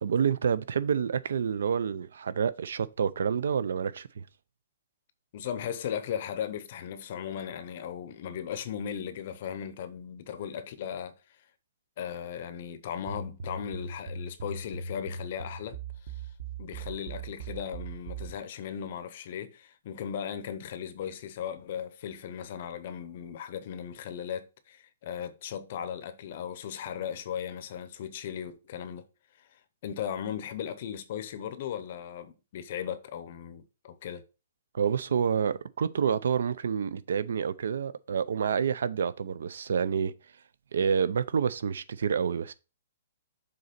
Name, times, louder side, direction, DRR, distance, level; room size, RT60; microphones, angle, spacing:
voice 1, 0.0-4.2 34.7-40.1 40.7-42.5, right 7 dB, 65° right, 0.5 m, -28 dB
voice 2, 5.3-11.1 12.0-15.8 16.0-16.2 16.6-29.1 29.4-34.2, left 8 dB, 35° left, 0.7 m, -37 dB
sound 1, 13.1-18.4, right 4 dB, 40° right, 1.0 m, -39 dB
6.8 x 4.0 x 5.1 m
hypercardioid pair, 180°, 0 cm